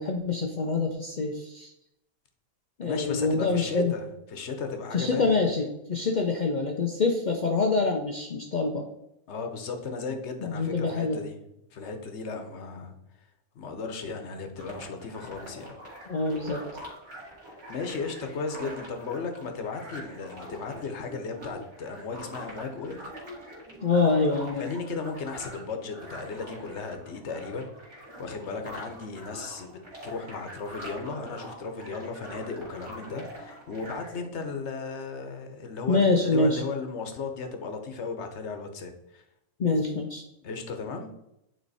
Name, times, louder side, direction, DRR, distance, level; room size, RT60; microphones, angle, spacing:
voice 1, 0.0-1.7 2.8-3.9 4.9-8.9 10.4-11.2 16.1-16.7 23.8-24.7 35.9-36.6 39.6-40.2, left 3 dB, 85° left, 2 dB, 0.4 m, -25 dB
voice 2, 2.8-5.4 9.3-11.4 11.7-13.0 13.5-15.8 17.5-23.1 24.6-39.2 40.4-41.1, left 4 dB, 55° left, 6 dB, 1.1 m, -36 dB
sound 1, 14.6-34.2, equal, 45° right, 2.2 m, -44 dB
9.3 x 3.1 x 4.1 m, 0.84 s
omnidirectional pair, 1.6 m